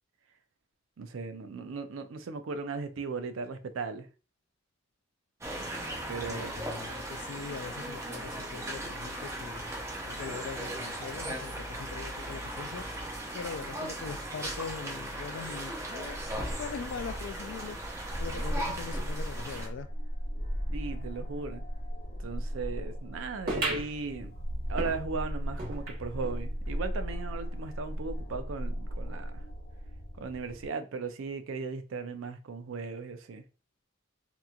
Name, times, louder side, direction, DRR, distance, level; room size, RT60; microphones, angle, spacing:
voice 1, 1.0-4.1 6.1-6.5 20.7-21.6 22.2-24.3 24.7-29.3 30.2-33.4, right 4 dB, 85° right, 0.4 m, -37 dB
sound 1, 5.4-19.7, right 1 dB, 15° right, 0.5 m, -38 dB
voice 2, 6.2-9.6 10.0-12.9 13.3-16.2 16.6-17.8 18.2-19.9, left 6 dB, 65° left, 0.3 m, -41 dB
sound 2, 16.1-30.7, equal, 80° left, 0.9 m, -37 dB
sound 3, 23.5-26.4 26.9-27.0 27.2-27.3 28.0-28.1, right 2 dB, 50° right, 1.0 m, -37 dB
2.9 x 2.4 x 2.2 m
head